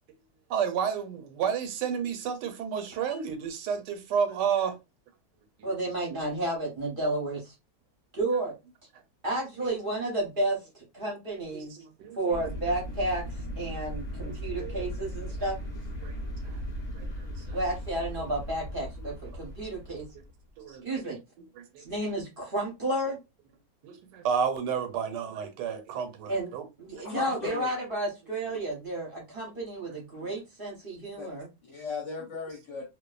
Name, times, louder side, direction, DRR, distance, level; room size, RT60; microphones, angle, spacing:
voice 1, 0.5-4.8 5.6-5.7 11.5-12.2 14.2-14.3 14.6-14.8 16.0-16.6 16.9-17.4 19.0-19.1 20.6-20.9 21.6-21.9 23.8-26.6, right 7 dB, 85° right, 1.2 m, -31 dB
voice 2, 5.6-7.5 8.1-8.5 9.2-11.8 12.1-15.6 17.5-20.1 20.7-21.2 21.8-23.2 26.3-26.5 26.8-31.5, right 1 dB, 45° right, 0.7 m, -32 dB
sound 1, 12.3-20.5, equal, 85° left, 0.3 m, -37 dB
voice 3, 27.0-27.7 31.2-31.3 31.6-32.9, left 4 dB, 55° left, 0.9 m, -36 dB
2.6 x 2.3 x 2.3 m
omnidirectional pair, 1.8 m